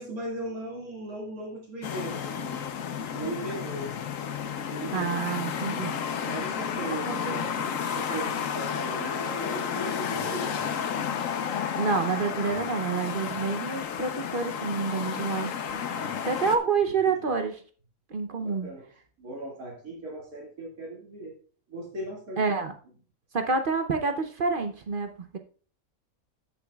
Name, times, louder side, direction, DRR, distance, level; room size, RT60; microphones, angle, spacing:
voice 1, 0.0-2.7 3.1-3.9 4.7-5.2 5.5-5.9 6.3-10.6 12.4-12.6 13.2-13.3 15.9-16.4 18.3-18.8 19.2-21.3 21.7-22.4, right 1 dB, 85° right, -2 dB, 2.5 m, -38 dB
sound 1, 1.8-16.6, left 7 dB, 70° left, 1.2 m, -32 dB
voice 2, 4.9-5.9 6.9-7.5 11.8-15.8 16.2-17.6 18.1-18.7 22.4-22.7 23.3-25.4, right 4 dB, 50° right, 6 dB, 0.7 m, -28 dB
14.0 x 7.1 x 2.3 m, 0.40 s
omnidirectional pair, 1.5 m